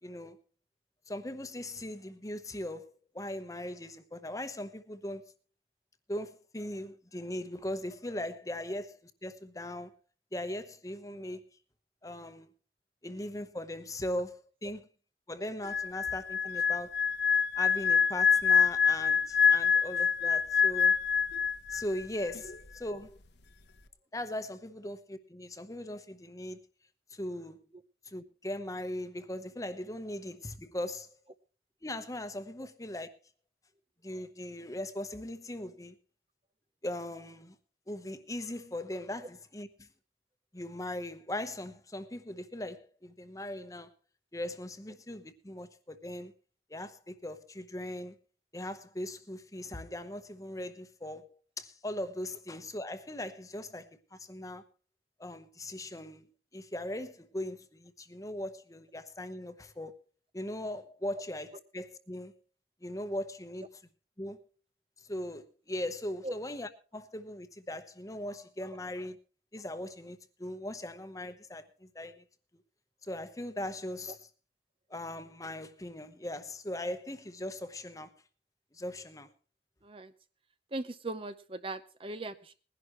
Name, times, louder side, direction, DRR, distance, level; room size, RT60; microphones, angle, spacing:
voice 1, 0.0-0.4 1.1-5.3 6.1-9.9 10.3-11.5 12.0-12.5 13.0-14.8 15.3-16.9 17.6-21.0 21.7-23.2 24.1-26.6 27.1-27.6 28.1-31.1 31.8-33.1 34.0-35.9 36.8-37.5 37.9-39.7 40.5-43.9 44.3-46.3 46.7-48.1 48.5-54.6 55.2-59.9 60.3-62.3 62.8-63.7 64.2-64.4 65.1-69.2 69.5-72.2 73.1-74.2 74.9-78.1 78.7-79.3, left 1 dB, 20° left, 1.0 m, -39 dB
sound 1, 15.6-22.0 22.3-22.6, left 7 dB, 70° left, 1.1 m, -26 dB
voice 2, 80.7-82.5, right 2 dB, 30° right, 0.7 m, -39 dB
21.0 x 11.0 x 3.1 m
head